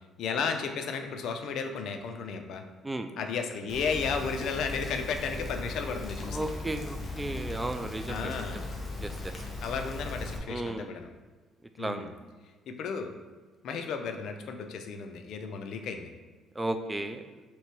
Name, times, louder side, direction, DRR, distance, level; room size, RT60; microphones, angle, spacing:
voice 1, 0.2-2.6 3.2-6.5 8.1-8.7 9.6-11.1 11.8-12.1 12.7-13.1 13.6-16.1, left 5 dB, 70° left, 6 dB, 0.4 m, -34 dB
Rain, 3.7-10.4, left 2 dB, 30° left, 0.8 m, -38 dB
voice 2, 6.3-8.7 9.0-9.3 10.5-10.9 11.8-12.1 16.6-17.2, right 1 dB, 15° right, 8 dB, 0.3 m, -34 dB
3.3 x 3.1 x 4.4 m, 1.3 s
cardioid pair, 100°, 0 cm